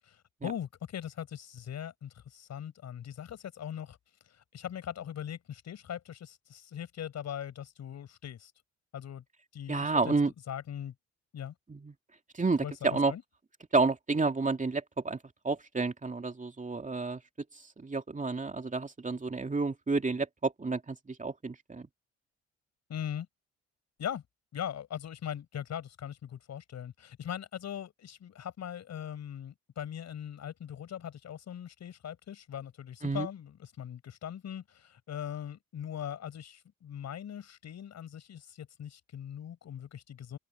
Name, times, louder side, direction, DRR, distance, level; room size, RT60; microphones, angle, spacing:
voice 1, 0.0-4.0 4.3-8.5 8.9-9.2 9.5-10.1 10.5-10.9 11.3-11.5 12.6-13.2 22.9-23.3 24.0-24.2 24.5-40.4, left 9 dB, 60° left, 6.5 m, -40 dB
voice 2, 9.7-10.3 11.7-11.9 12.3-13.1 13.7-15.2 15.4-17.2 17.8-21.9 33.0-33.3, right 3 dB, 25° right, 2.7 m, -30 dB
open air
supercardioid pair, 60°, 30 cm